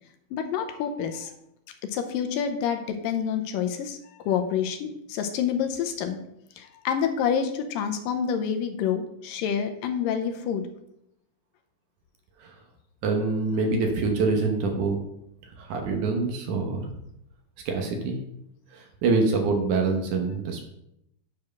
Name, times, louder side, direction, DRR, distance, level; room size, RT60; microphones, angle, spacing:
voice 1, 0.3-1.3 1.8-6.2 6.6-10.7, left 8 dB, 80° left, 6 dB, 2.2 m, -28 dB
voice 2, 13.0-15.0 15.4-17.0 17.7-18.2 18.7-20.6, right 3 dB, 65° right, 3 dB, 2.2 m, -25 dB
8.5 x 4.6 x 6.3 m, 0.80 s
omnidirectional pair, 4.2 m